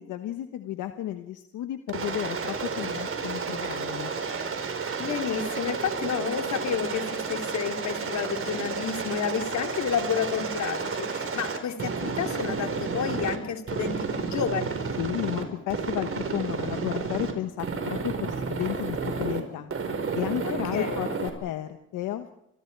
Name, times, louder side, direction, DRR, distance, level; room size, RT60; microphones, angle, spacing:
voice 1, 0.0-4.1 15.0-19.7 20.1-22.3, left 12 dB, 90° left, 8 dB, 1.2 m, -33 dB
Aircraft, 1.9-13.4 13.7-15.4 15.7-17.3 17.6-19.4 19.7-21.3, right 5 dB, 45° right, 4.5 m, -31 dB
voice 2, 5.0-14.8 20.7-21.1, left 7 dB, 65° left, 5 dB, 3.0 m, -30 dB
29.5 x 26.0 x 4.7 m, 0.78 s
cardioid pair, 90°, 30 cm